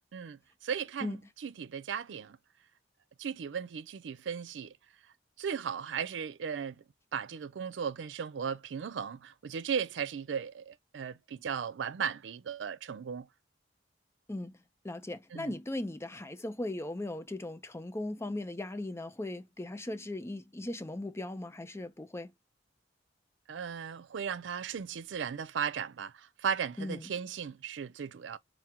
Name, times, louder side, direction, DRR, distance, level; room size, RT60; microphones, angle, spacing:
voice 1, 0.1-1.2 1.4-2.4 3.2-4.8 5.4-6.8 7.1-13.3 15.3-15.5 23.5-28.4, right 7 dB, 85° right, 0.4 m, -36 dB
voice 2, 14.8-22.3 26.8-27.1, left 1 dB, 15° left, 0.5 m, -38 dB
4.4 x 2.1 x 3.6 m
head